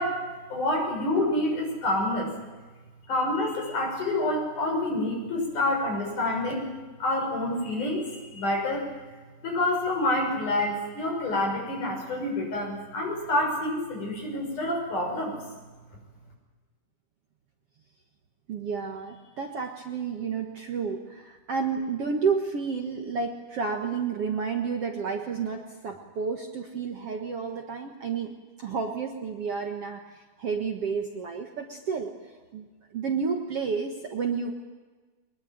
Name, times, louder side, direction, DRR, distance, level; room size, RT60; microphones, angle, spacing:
voice 1, 0.0-2.3 3.1-6.7 7.0-8.9 9.4-15.4, left 1 dB, 55° left, 1 dB, 7.7 m, -28 dB
voice 2, 18.5-28.3 28.6-32.1 32.5-32.7 32.9-34.5, right 5 dB, 50° right, 3 dB, 2.1 m, -31 dB
24.0 x 21.0 x 9.1 m, 1.3 s
omnidirectional pair, 4.2 m